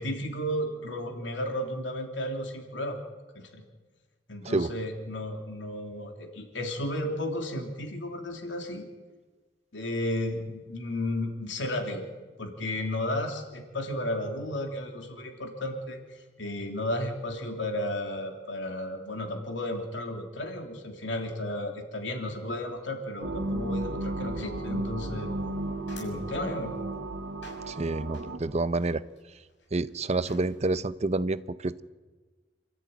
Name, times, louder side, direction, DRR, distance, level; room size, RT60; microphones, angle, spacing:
voice 1, 0.0-3.0 3.3-3.6 4.3-8.9 9.7-12.0 12.4-25.3 25.9-26.7, left 1 dB, 85° left, 3 dB, 3.2 m, -33 dB
sound 1, 23.2-28.4, right 1 dB, 70° right, 2.3 m, -34 dB
sound 2, 25.2-30.8, left 2 dB, 70° left, 6.6 m, -55 dB
voice 2, 27.7-29.0 29.7-31.8, right 2 dB, 35° right, 15 dB, 0.7 m, -28 dB
27.5 x 13.5 x 9.2 m, 1.3 s
head